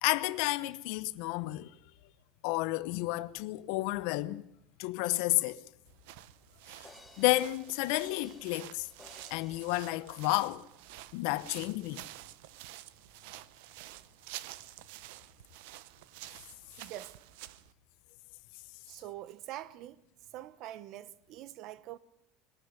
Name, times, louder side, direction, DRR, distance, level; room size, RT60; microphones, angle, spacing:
voice 1, 0.0-1.7 2.4-4.4 4.8-5.6 6.7-6.9 7.2-8.9 9.3-10.6 11.1-12.0, left 19 dB, 75° left, 0.9 m, -31 dB
sound 1, 5.9-17.7, right 16 dB, 80° right, 0.7 m, -49 dB
sound 2, 6.8-10.6 11.1-11.2, left 2 dB, 5° left, 2.1 m, -57 dB
voice 2, 16.8-17.1 18.9-20.0 20.3-22.0, right 13 dB, 55° right, 1.1 m, -44 dB
21.0 x 13.0 x 9.8 m
supercardioid pair, 135°, 0 cm